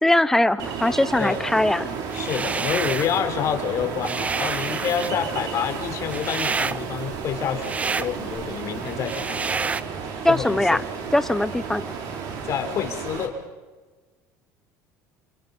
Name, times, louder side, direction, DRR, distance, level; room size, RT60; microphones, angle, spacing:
voice 1, 0.0-1.9 10.2-10.8 11.1-11.9, left 1 dB, 5° left, 14 dB, 1.0 m, -21 dB
Ocean, 0.6-13.3, right 6 dB, 65° right, 4.6 m, -33 dB
sound 1, 2.0-3.2 3.6-9.8, right 4 dB, 20° right, 0.7 m, -29 dB
voice 2, 2.1-9.6 10.2-10.8 12.4-13.3, left 8 dB, 50° left, 6 dB, 4.0 m, -28 dB
29.5 x 27.0 x 5.5 m, 1.3 s
cardioid pair, 120°, 7 cm